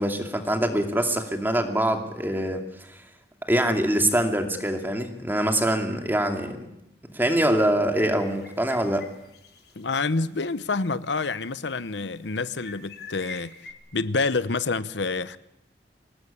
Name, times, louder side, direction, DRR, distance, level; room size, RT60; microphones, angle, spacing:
voice 1, 0.0-3.0 3.4-6.7 7.1-9.1, right 1 dB, 10° right, 2.6 m, -24 dB
sound 1, 7.9-9.8 10.2-10.3 10.8-11.6 12.2-13.7, left 4 dB, 60° left, 3.7 m, -45 dB
voice 2, 9.8-13.5 13.9-15.4, left 3 dB, 85° left, 0.9 m, -27 dB
25.5 x 19.0 x 8.7 m
head